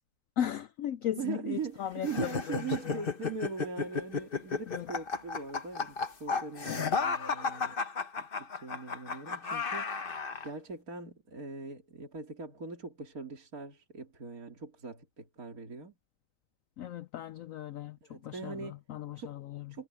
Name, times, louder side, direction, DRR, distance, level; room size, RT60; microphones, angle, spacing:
voice 1, 0.4-3.0 4.7-4.9 6.7-6.9 16.8-18.0 18.2-19.7, left 10 dB, 85° left, 0.7 m, -37 dB
voice 2, 1.2-7.8 8.2-16.0 18.0-18.8 19.2-19.4 19.7-19.9, right 5 dB, 50° right, 3.3 m, -41 dB
sound 1, 2.0-10.5, left 5 dB, 35° left, 1.2 m, -33 dB
omnidirectional pair, 2.0 m